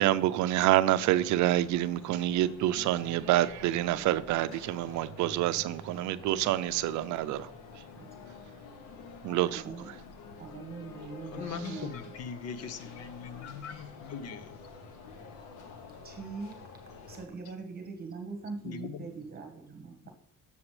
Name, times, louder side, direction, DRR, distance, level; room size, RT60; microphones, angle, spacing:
voice 1, 0.0-7.5 9.2-9.6, right 14 dB, 65° right, 0.5 m, -27 dB
sound 1, 0.9-17.3, left 4 dB, 80° left, 1.2 m, -48 dB
voice 2, 9.5-9.9 10.4-11.9 15.9-16.6 17.1-20.1, right 4 dB, 30° right, 1.2 m, -42 dB
voice 3, 11.3-14.6 18.6-19.1 20.0-20.1, left 6 dB, 55° left, 0.7 m, -41 dB
7.2 x 7.0 x 3.2 m
cardioid pair, 130°, 31 cm